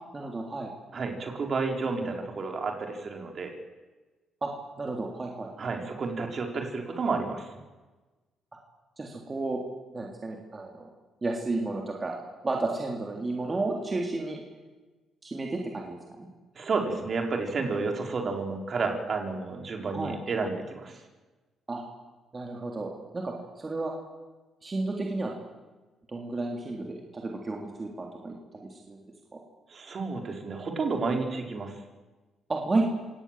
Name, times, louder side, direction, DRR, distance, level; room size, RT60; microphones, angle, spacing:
voice 1, 0.1-0.7 4.4-4.5 4.8-5.5 9.0-9.6 9.9-10.9 11.2-12.1 12.4-14.4 15.2-16.3 19.9-20.2 21.7-21.8 22.3-23.9 24.6-25.3 26.1-28.4 28.7-29.0 29.3-29.4 32.5-32.8, right 2 dB, 25° right, 0 dB, 3.6 m, -32 dB
voice 2, 0.9-3.5 5.6-7.5 16.5-21.0 29.7-31.7, right 4 dB, 45° right, 3 dB, 4.6 m, -31 dB
26.5 x 18.0 x 7.7 m, 1.2 s
cardioid pair, 90°, 0 cm